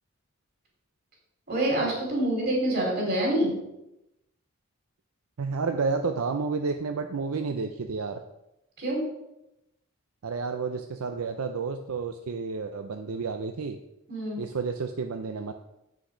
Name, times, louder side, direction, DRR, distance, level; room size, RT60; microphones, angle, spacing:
voice 1, 1.5-3.7 8.8-9.0 14.1-14.4, right 1 dB, 45° right, -1 dB, 3.4 m, -26 dB
voice 2, 5.4-8.2 10.2-13.8 14.4-15.5, right 4 dB, 75° right, 6 dB, 0.5 m, -30 dB
8.0 x 6.3 x 5.0 m, 0.89 s
head